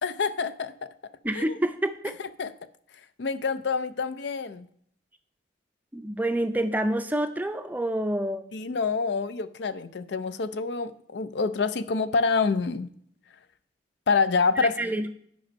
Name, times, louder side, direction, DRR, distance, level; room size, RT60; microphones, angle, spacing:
voice 1, 0.0-0.9 1.4-1.6 2.4-2.5 3.2-4.7 8.5-12.9 14.1-14.7, left 4 dB, 60° left, 12 dB, 0.5 m, -27 dB
voice 2, 1.2-2.2 5.9-8.4 14.6-15.1, right 1 dB, 10° right, 8 dB, 0.5 m, -27 dB
10.5 x 5.3 x 5.2 m, 0.65 s
head